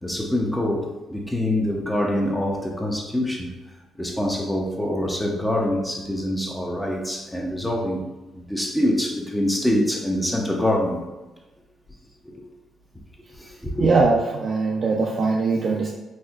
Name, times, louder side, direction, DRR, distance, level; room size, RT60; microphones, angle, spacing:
voice 1, 0.0-3.5 4.0-8.1 8.5-11.0 12.2-12.4 13.4-13.9, left 1 dB, 5° left, -1 dB, 0.6 m, -25 dB
voice 2, 13.8-15.9, right 3 dB, 50° right, -2 dB, 0.4 m, -21 dB
4.1 x 2.6 x 2.3 m, 1.1 s
cardioid pair, 90°, 0 cm